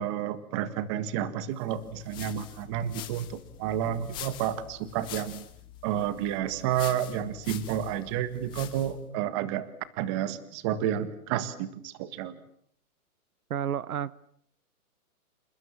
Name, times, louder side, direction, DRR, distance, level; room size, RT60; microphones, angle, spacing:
voice 1, 0.0-5.5 5.8-9.7 10.0-12.3, right 10 dB, 20° right, 1.5 m, -30 dB
sound 1, 1.7-9.1, left 14 dB, 10° left, 1.1 m, -45 dB
voice 2, 13.5-14.2, right 9 dB, 70° right, 1.2 m, -31 dB
28.5 x 28.0 x 7.4 m
hypercardioid pair, 170°, 45 cm